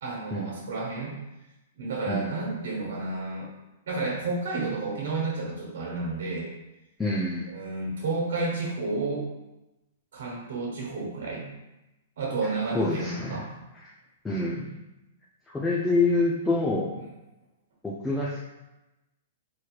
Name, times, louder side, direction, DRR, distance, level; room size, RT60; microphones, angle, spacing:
voice 1, 0.0-1.2 1.7-3.5 3.9-6.5 7.5-9.3 10.1-11.5 12.2-13.5 17.0-17.1, right 3 dB, 70° right, -3 dB, 1.2 m, -31 dB
voice 2, 7.0-7.5 12.7-13.5 14.2-14.8 15.5-16.9 17.8-18.4, left 2 dB, 10° left, -5 dB, 0.6 m, -26 dB
4.4 x 3.2 x 2.4 m, 0.99 s
hypercardioid pair, 120°, 0 cm